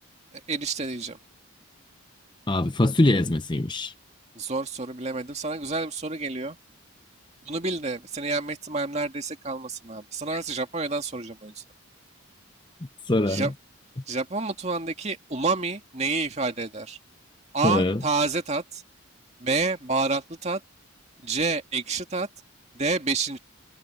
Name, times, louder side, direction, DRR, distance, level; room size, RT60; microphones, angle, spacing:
voice 1, 0.3-1.2 4.4-6.6 7.5-11.6 13.3-13.5 14.1-17.0 17.5-18.8 19.4-20.6 21.2-22.3 22.7-23.4, right 3 dB, 30° right, 2.2 m, -29 dB
voice 2, 2.5-3.9 10.3-10.4 13.1-13.5 17.6-18.0, left 2 dB, 20° left, 0.6 m, -23 dB
head